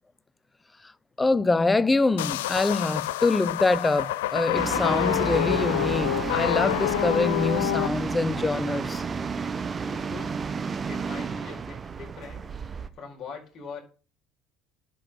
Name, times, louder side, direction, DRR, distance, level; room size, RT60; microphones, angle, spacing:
voice 1, 1.2-9.0, left 3 dB, 15° left, 0.8 m, -25 dB
sound 1, 2.2-7.9, left 15 dB, 80° left, 0.5 m, -27 dB
sound 2, 4.5-12.9, right 5 dB, 30° right, 1.3 m, -31 dB
voice 2, 9.8-10.4 10.9-12.4 12.9-13.8, left 4 dB, 45° left, 4.8 m, -42 dB
11.0 x 6.0 x 8.3 m
hypercardioid pair, 75°, 0 cm